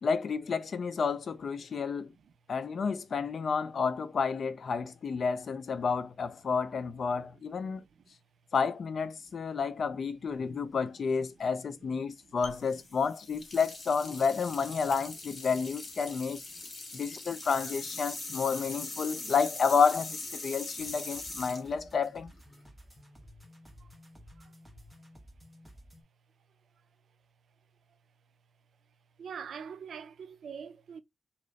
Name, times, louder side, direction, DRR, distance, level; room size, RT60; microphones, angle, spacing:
voice 1, 0.0-2.1 2.5-7.8 8.5-16.4 16.9-22.3, left 5 dB, 60° left, 0.5 m, -30 dB
sound 1, 12.4-22.6, left 2 dB, 45° left, 1.4 m, -42 dB
sound 2, 20.8-26.0, equal, ahead, 1.3 m, -54 dB
voice 2, 29.2-31.0, right 7 dB, 80° right, 0.4 m, -45 dB
3.2 x 3.0 x 3.9 m
wide cardioid pair, 110°, 0 cm